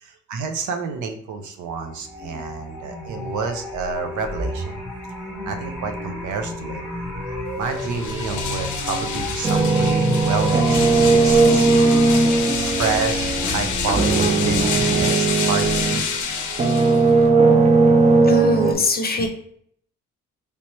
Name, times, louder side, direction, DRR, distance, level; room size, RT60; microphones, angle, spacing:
voice 1, 0.0-4.8 5.4-6.8 7.6-16.1, right 5 dB, 75° right, 6 dB, 0.6 m, -29 dB
sound 1, 1.7-15.1, left 1 dB, ahead, 1.4 m, -30 dB
sound 2, 7.6-17.3, left 6 dB, 80° left, 0.6 m, -28 dB
sound 3, 9.4-16.1 16.5-18.7, right 3 dB, 25° right, 0.4 m, -18 dB
voice 2, 18.2-19.3, left 2 dB, 30° left, 5 dB, 0.7 m, -22 dB
3.3 x 2.8 x 3.0 m, 0.65 s
cardioid pair, 90°, 30 cm